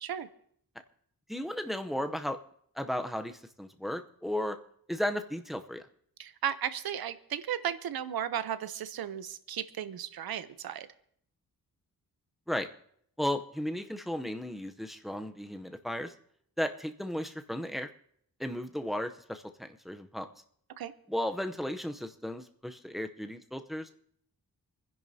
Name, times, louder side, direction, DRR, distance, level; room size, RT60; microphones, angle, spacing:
voice 1, 1.3-2.4 2.8-4.6 4.9-5.9 12.5-12.7 13.2-16.1 16.6-17.9 18.4-20.3 21.1-23.9, left 1 dB, ahead, 7 dB, 0.6 m, -35 dB
voice 2, 6.2-10.9 20.8-20.9, right 9 dB, 85° right, 13 dB, 0.7 m, -35 dB
27.0 x 10.5 x 2.7 m, 0.67 s
wide cardioid pair, 145°, 36 cm